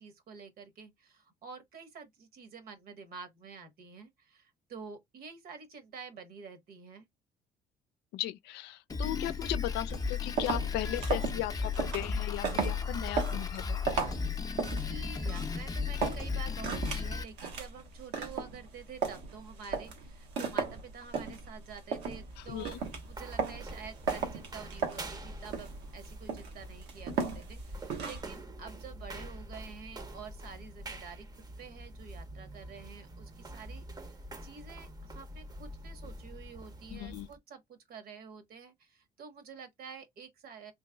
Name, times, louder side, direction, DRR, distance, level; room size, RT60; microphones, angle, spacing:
voice 1, 0.0-7.1 14.5-22.8 23.0-31.3 31.6-40.7, right 5 dB, 65° right, 1.2 m, -48 dB
voice 2, 8.1-13.8 22.4-22.8 36.9-37.3, left 14 dB, 85° left, 0.5 m, -37 dB
Drum kit, 8.9-17.2, left 5 dB, 20° left, 0.6 m, -34 dB
sound 1, 9.9-28.4, right 5 dB, 90° right, 1.3 m, -37 dB
sound 2, 22.2-37.4, right 1 dB, 25° right, 0.7 m, -46 dB
3.3 x 3.0 x 2.3 m
cardioid pair, 110°, 17 cm